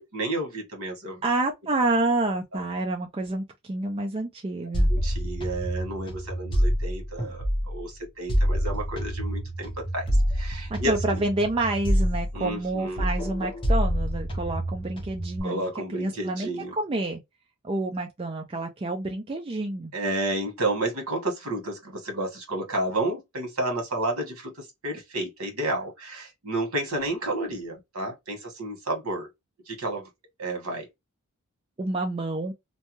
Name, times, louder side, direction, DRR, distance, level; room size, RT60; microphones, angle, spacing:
voice 1, 0.0-1.2 4.9-10.1 10.3-11.2 12.3-13.1 15.4-16.7 19.9-29.3 29.7-30.1 30.4-30.9, right 1 dB, 75° right, 1.3 m, -31 dB
voice 2, 1.2-4.9 10.7-17.2 17.6-19.9 31.8-32.5, right 2 dB, 25° right, 0.4 m, -28 dB
sound 1, 4.7-7.8 8.3-12.7 13.0-15.4, equal, 25° left, 0.7 m, -27 dB
2.6 x 2.2 x 2.9 m
head